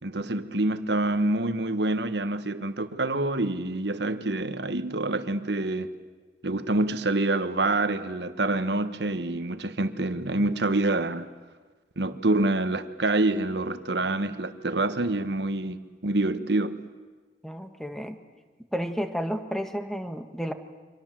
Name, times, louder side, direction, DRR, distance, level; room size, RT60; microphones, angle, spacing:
voice 1, 0.0-5.9 6.4-11.3 12.0-16.8, right 2 dB, 75° right, 1.4 m, -26 dB
voice 2, 17.4-18.2 18.7-20.5, equal, ahead, 1.6 m, -31 dB
29.5 x 25.0 x 7.6 m
head